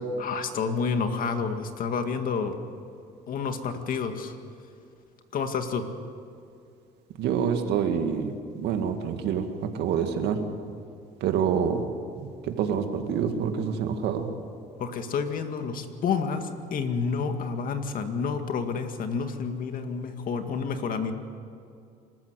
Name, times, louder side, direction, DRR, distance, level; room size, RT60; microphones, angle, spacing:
voice 1, 0.2-2.5 3.3-4.4 5.3-5.9 14.8-21.1, left 5 dB, 55° left, 6 dB, 2.1 m, -29 dB
voice 2, 7.2-9.5 9.7-10.4 11.2-11.8 12.2-14.3, right 7 dB, 80° right, 6 dB, 2.1 m, -27 dB
26.0 x 14.0 x 8.3 m, 2.5 s
cardioid pair, 110°, 17 cm